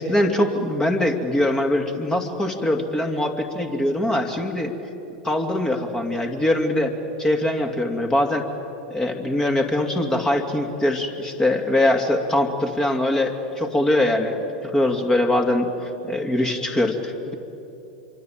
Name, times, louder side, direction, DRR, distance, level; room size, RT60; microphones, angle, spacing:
voice 1, 0.0-4.7 5.2-6.9 7.2-8.4 8.9-15.7 16.0-17.3, left 1 dB, 15° left, 4 dB, 2.5 m, -22 dB
26.5 x 24.0 x 8.9 m, 2.9 s
figure-of-eight pair, 90°, 5 cm